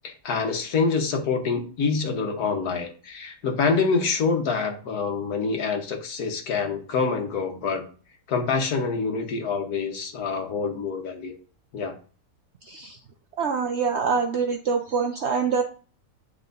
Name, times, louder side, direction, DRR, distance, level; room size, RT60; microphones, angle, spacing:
voice 1, 0.0-7.9 8.3-11.3 11.7-11.9, left 4 dB, 70° left, 4 dB, 1.6 m, -26 dB
voice 2, 12.7-13.0 13.4-15.6, right 5 dB, 65° right, 5 dB, 0.7 m, -25 dB
9.8 x 3.8 x 2.6 m, 0.39 s
omnidirectional pair, 1.7 m